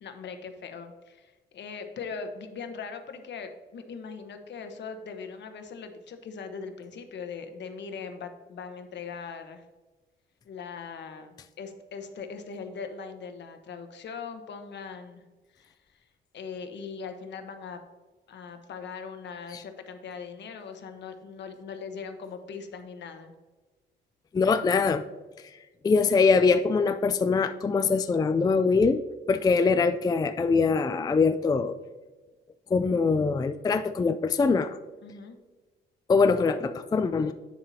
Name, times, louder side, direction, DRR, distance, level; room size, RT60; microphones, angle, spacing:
voice 1, 0.0-9.6 10.4-15.2 15.5-16.0 16.3-17.8 18.3-23.3 35.0-35.4, left 5 dB, 65° left, 7 dB, 1.1 m, -40 dB
voice 2, 24.3-25.0 25.8-29.0 29.3-31.7 32.7-34.8 36.1-37.3, left 4 dB, 20° left, 9 dB, 0.3 m, -23 dB
8.7 x 7.2 x 2.8 m, 1.3 s
cardioid pair, 90°, 20 cm